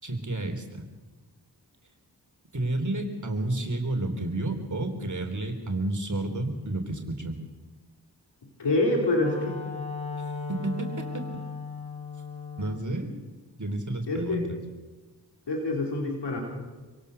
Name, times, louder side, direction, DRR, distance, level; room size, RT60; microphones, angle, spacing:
voice 1, 0.0-0.8 2.5-7.3 10.2-11.2 12.6-13.1 13.6-14.4, right 2 dB, 45° right, 5 dB, 3.6 m, -31 dB
voice 2, 8.6-9.6 14.1-14.4 15.5-16.4, left 2 dB, 85° left, 0 dB, 4.2 m, -26 dB
Wind instrument woodwind instrument, 8.7-12.9, left 4 dB, 15° left, 5.1 m, -36 dB
26.5 x 17.0 x 6.9 m, 1.3 s
cardioid pair, 40°, 41 cm